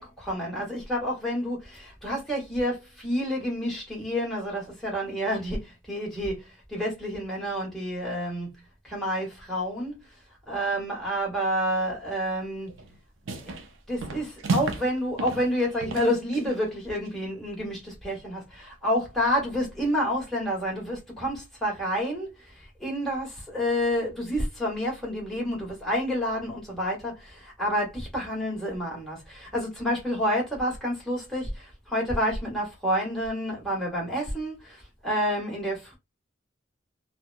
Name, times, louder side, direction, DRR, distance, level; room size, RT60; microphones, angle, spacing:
voice 1, 0.0-8.5 8.8-10.0 10.5-12.7 13.3-13.5 13.9-36.0, equal, ahead, 1.3 m, -29 dB
sound 1, 12.7-12.9 13.2-13.7 14.0-14.9 15.2-16.6, right 3 dB, 80° right, 0.5 m, -32 dB
2.9 x 2.1 x 2.5 m
head